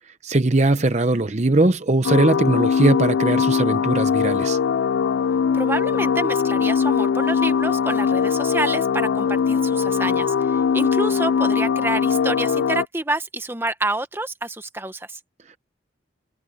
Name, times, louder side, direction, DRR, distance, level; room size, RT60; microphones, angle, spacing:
voice 1, 0.2-4.6, right 2 dB, 35° right, 0.7 m, -20 dB
sound 1, 2.0-12.9, left 6 dB, 75° left, 0.3 m, -21 dB
voice 2, 5.5-15.2, right 2 dB, 10° right, 1.1 m, -28 dB
head